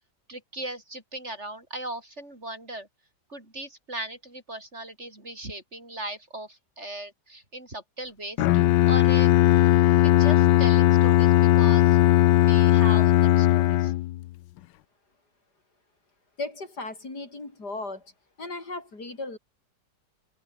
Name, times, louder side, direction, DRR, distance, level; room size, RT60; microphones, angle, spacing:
voice 1, 0.3-2.9 3.3-9.4 10.0-12.0 12.4-13.9, right 1 dB, 40° right, 6.2 m, -38 dB
Bowed string instrument, 8.4-14.3, left 16 dB, 85° left, 1.3 m, -18 dB
voice 2, 16.4-18.0 18.4-19.4, left 2 dB, 65° left, 6.0 m, -36 dB
omnidirectional pair, 1.9 m